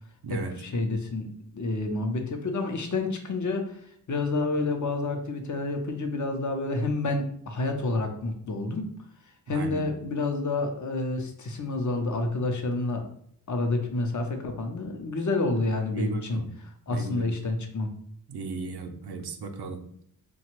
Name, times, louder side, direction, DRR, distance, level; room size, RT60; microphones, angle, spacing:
voice 1, 0.3-3.7 4.1-8.9 9.5-13.0 13.5-17.9, left 2 dB, 50° left, 5 dB, 0.6 m, -29 dB
voice 2, 9.5-9.9 15.9-16.5 16.9-17.2 18.3-19.8, right 4 dB, 85° right, 5 dB, 0.5 m, -36 dB
2.9 x 2.2 x 2.9 m, 0.68 s
wide cardioid pair, 60°, 38 cm